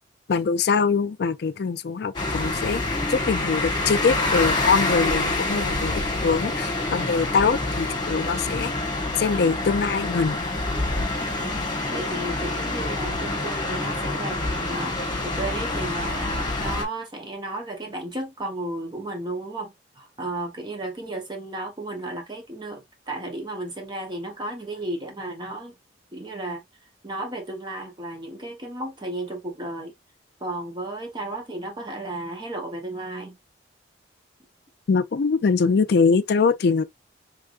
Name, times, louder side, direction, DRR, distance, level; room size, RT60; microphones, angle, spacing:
voice 1, 0.3-2.8 3.1-8.7 9.2-10.5 34.9-36.8, left 5 dB, 60° left, 0.4 m, -23 dB
sound 1, 2.1-16.8, left 2 dB, 25° left, 1.4 m, -26 dB
voice 2, 11.2-11.5 11.9-25.7 26.1-26.6 27.0-29.9 30.4-33.4, right 1 dB, 25° right, 1.0 m, -34 dB
3.6 x 3.5 x 2.4 m
head